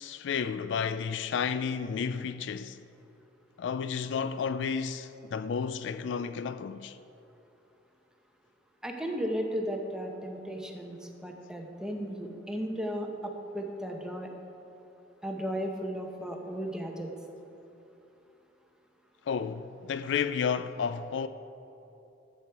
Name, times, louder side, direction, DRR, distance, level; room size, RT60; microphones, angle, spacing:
voice 1, 0.0-2.8 3.6-7.0 19.3-21.3, left 6 dB, 70° left, 0.3 m, -32 dB
voice 2, 8.8-14.3 15.2-17.1, equal, 5° right, 0.8 m, -35 dB
12.0 x 7.7 x 4.6 m
head